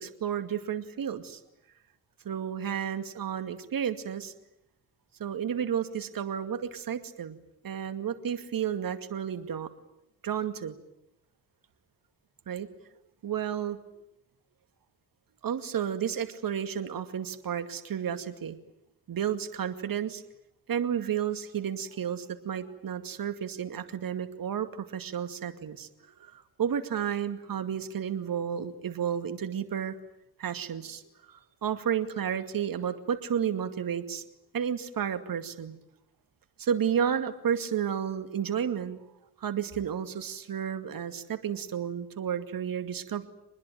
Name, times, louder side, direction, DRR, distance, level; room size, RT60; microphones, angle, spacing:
voice 1, 0.0-1.4 2.2-4.3 5.2-7.4 7.6-9.7 10.2-10.8 12.5-12.7 13.2-13.8 15.4-18.6 19.1-20.2 20.7-25.9 26.2-29.9 30.4-31.0 31.3-34.2 34.5-35.8 36.6-39.0 39.4-43.3, right 8 dB, 50° right, 9 dB, 2.3 m, -32 dB
25.5 x 20.5 x 9.3 m, 0.83 s
hypercardioid pair, 45°, 43 cm